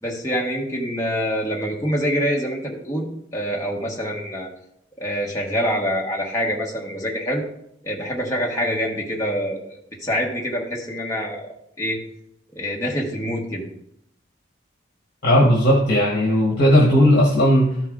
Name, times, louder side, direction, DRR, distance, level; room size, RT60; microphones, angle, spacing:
voice 1, 0.0-3.1 3.3-4.5 5.0-7.4 7.8-12.0 12.5-13.7, equal, 15° left, -3 dB, 1.2 m, -25 dB
voice 2, 15.2-17.9, equal, 50° left, -3 dB, 1.5 m, -16 dB
13.0 x 4.6 x 3.7 m, 0.74 s
head